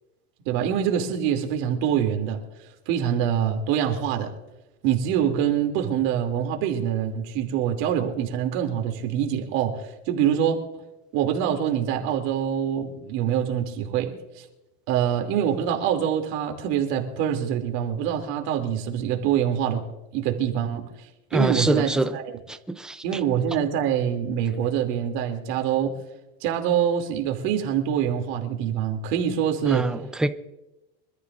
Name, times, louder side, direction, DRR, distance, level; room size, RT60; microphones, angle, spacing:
voice 1, 0.5-2.4 2.9-4.3 4.8-10.8 11.1-14.4 14.9-19.8 20.1-20.8 21.3-22.2 23.0-25.9 26.4-29.9, right 9 dB, 55° right, 2.8 m, -25 dB
voice 2, 21.3-22.2 22.5-23.2 29.6-30.3, right 2 dB, ahead, 0.4 m, -25 dB
25.5 x 13.5 x 2.5 m
supercardioid pair, 160°, 32 cm